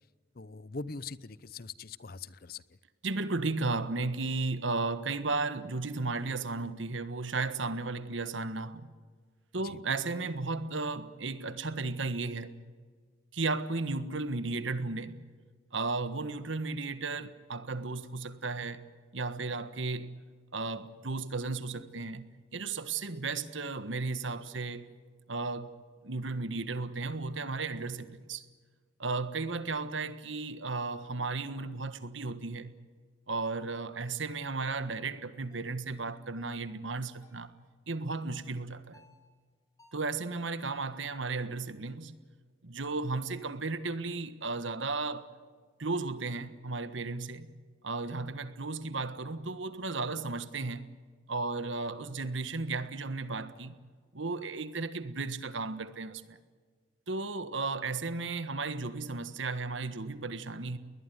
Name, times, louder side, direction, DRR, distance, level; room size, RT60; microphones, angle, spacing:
voice 1, 0.3-2.6 9.6-9.8, left 4 dB, 50° left, 0.7 m, -42 dB
voice 2, 3.0-8.9 9.5-12.6 13.3-15.2 15.7-18.9 19.1-20.1 20.5-24.9 25.3-25.7 26.0-28.5 29.0-32.7 33.3-37.5 37.9-39.0 39.9-42.2 42.6-45.3 45.8-47.5 47.8-50.9 51.3-53.7 54.1-56.4 57.1-60.8, right 3 dB, 80° right, 1.5 m, -34 dB
sound 1, 34.6-34.8 35.5-35.8 36.4-36.6 37.2-37.5 38.1-38.4 38.9-39.2 39.8-40.1 40.6-41.0, left 1 dB, 20° left, 5.6 m, -62 dB
21.0 x 20.5 x 9.5 m
head